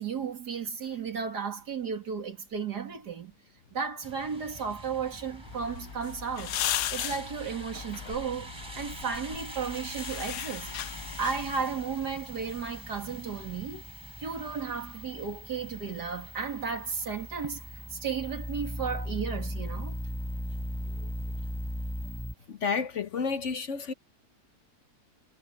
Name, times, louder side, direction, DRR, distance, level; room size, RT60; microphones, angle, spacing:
voice 1, 0.0-3.3 3.7-6.6 6.9-10.7 11.2-13.8 14.2-20.0, right 6 dB, 85° right, 3.2 m, -34 dB
sound 1, 4.0-22.2, right 1 dB, 15° right, 4.4 m, -48 dB
sound 2, 4.5-22.3, equal, 5° left, 3.5 m, -40 dB
sound 3, 5.4-11.6, left 11 dB, 80° left, 1.3 m, -37 dB
voice 2, 22.5-23.9, left 5 dB, 55° left, 1.1 m, -30 dB
omnidirectional pair, 1.7 m